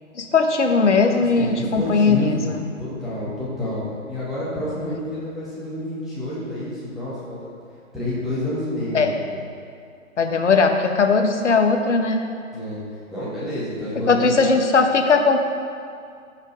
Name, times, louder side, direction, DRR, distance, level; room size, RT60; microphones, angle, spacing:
voice 1, 0.1-2.6 4.8-4.9 8.9-9.1 10.2-12.3 14.1-15.4, left 4 dB, 60° left, 5 dB, 1.3 m, -19 dB
voice 2, 1.2-2.5 2.8-7.4 7.9-9.3 12.5-12.8 13.1-14.3, left 1 dB, ahead, -12 dB, 2.0 m, -29 dB
14.5 x 5.6 x 4.8 m, 2.3 s
figure-of-eight pair, 130°, 41 cm